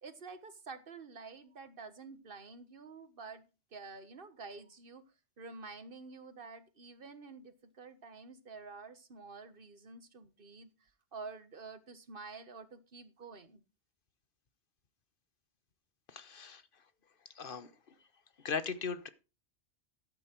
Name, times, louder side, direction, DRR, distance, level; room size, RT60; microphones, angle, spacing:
voice 1, 0.0-5.0 5.4-13.6, right 4 dB, 50° right, 12 dB, 1.4 m, -49 dB
voice 2, 16.1-16.6 17.3-17.7 18.4-19.1, left 5 dB, 50° left, 13 dB, 1.2 m, -38 dB
12.0 x 8.9 x 4.5 m, 0.31 s
omnidirectional pair, 1.2 m